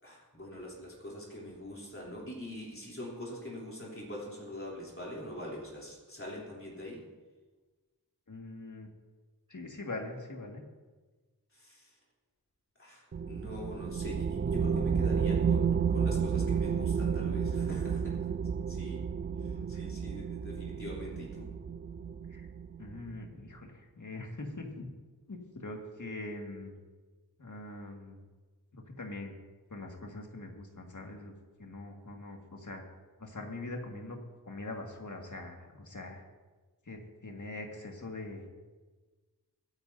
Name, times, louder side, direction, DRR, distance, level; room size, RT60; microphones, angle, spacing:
voice 1, 0.0-7.0 11.5-12.0 12.8-18.3 18.7-19.1 19.4-21.5, equal, 35° left, -5 dB, 3.4 m, -43 dB
voice 2, 8.3-8.9 9.5-10.6 19.5-19.9 22.3-22.5 22.8-24.9 25.3-26.8 27.4-28.2 28.7-29.3 29.7-31.3 31.6-32.8 33.2-34.2 34.5-36.2 36.8-38.5, left 2 dB, 50° left, 1 dB, 2.1 m, -43 dB
sound 1, 13.1-23.1, right 6 dB, 30° right, 0.4 m, -31 dB
22.5 x 10.5 x 2.8 m, 1.3 s
wide cardioid pair, 75°, 38 cm